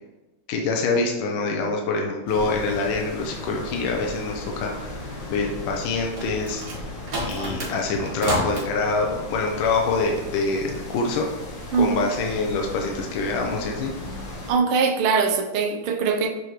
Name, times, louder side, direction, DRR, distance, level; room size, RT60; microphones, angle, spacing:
voice 1, 0.5-5.0 5.3-6.7 7.2-11.3 11.8-13.9, left 3 dB, 75° left, 1 dB, 1.5 m, -25 dB
sound 1, 2.3-14.5, left 2 dB, 55° left, 1.5 m, -36 dB
sound 2, 5.8-8.7, right 1 dB, 45° right, 1.6 m, -30 dB
voice 2, 11.7-12.1 14.5-16.3, right 5 dB, 90° right, 4 dB, 1.7 m, -22 dB
6.4 x 5.0 x 3.0 m, 1.1 s
omnidirectional pair, 2.4 m